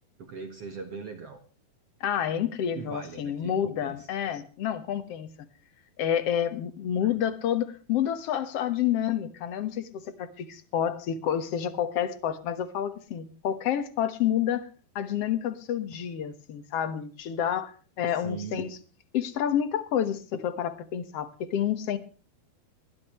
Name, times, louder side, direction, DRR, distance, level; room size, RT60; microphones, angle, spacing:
voice 1, 0.2-1.4 2.7-4.4 7.0-7.2 18.1-18.7, right 5 dB, 50° right, 6 dB, 2.0 m, -41 dB
voice 2, 2.0-5.3 6.0-14.7 15.0-18.8 19.1-22.0, left 9 dB, 55° left, 12 dB, 1.8 m, -29 dB
21.0 x 15.0 x 3.1 m, 0.38 s
omnidirectional pair, 4.4 m